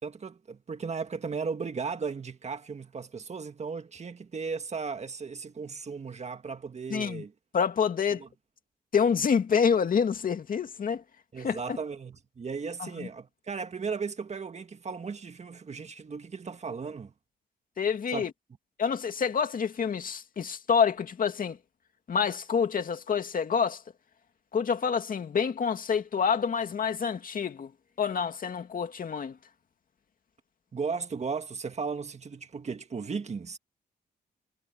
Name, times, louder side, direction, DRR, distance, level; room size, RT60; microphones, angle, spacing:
voice 1, 0.0-7.3 8.1-8.3 11.3-17.1 18.1-18.2 30.7-33.6, right 5 dB, 40° right, 1.9 m, -36 dB
voice 2, 6.9-7.2 7.5-8.2 8.9-11.0 11.4-11.6 12.8-13.1 17.8-18.3 18.8-21.6 22.1-23.8 24.5-27.7 28.0-29.4, left 6 dB, 55° left, 2.3 m, -27 dB
cardioid pair, 90°, 17 cm